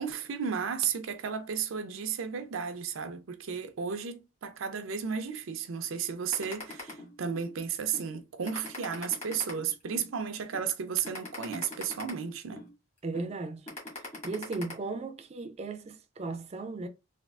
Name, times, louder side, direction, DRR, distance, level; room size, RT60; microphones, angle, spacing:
voice 1, 0.0-12.7, right 7 dB, 90° right, 0.5 m, -34 dB
sound 1, 6.3-7.5 7.9-8.1 8.4-10.1 10.5-10.7 11.0-12.7 13.1-13.3 13.7-14.7, left 2 dB, 35° left, 1.4 m, -42 dB
voice 2, 13.0-13.7 14.2-16.9, right 3 dB, 30° right, 0.4 m, -36 dB
3.5 x 2.4 x 2.3 m
head